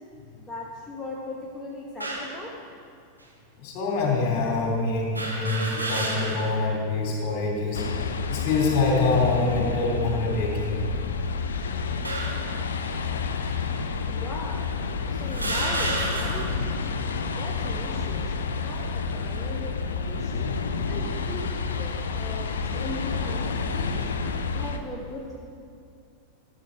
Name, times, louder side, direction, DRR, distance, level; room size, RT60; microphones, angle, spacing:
voice 1, 0.3-2.5 14.1-14.7 15.0-16.7 17.2-18.3 18.6-20.5 20.9-24.1 24.5-25.4, left 2 dB, 10° left, -3 dB, 1.2 m, -38 dB
sound 1, 2.0-2.4 3.2-3.3 5.1-6.6 7.0-7.1 8.3-8.7 9.4-9.7 10.6-11.4 12.0-12.5 13.4-13.6 14.4-14.5 15.3-16.6, right 1 dB, 85° right, 1.7 m, -31 dB
voice 2, 3.6-7.8 8.3-10.8, left 3 dB, 45° left, -2 dB, 3.4 m, -25 dB
sound 2, 7.7-24.8, left 5 dB, 65° left, 0.7 m, -29 dB
14.0 x 8.2 x 4.7 m, 2.4 s
figure-of-eight pair, 90°, 0 cm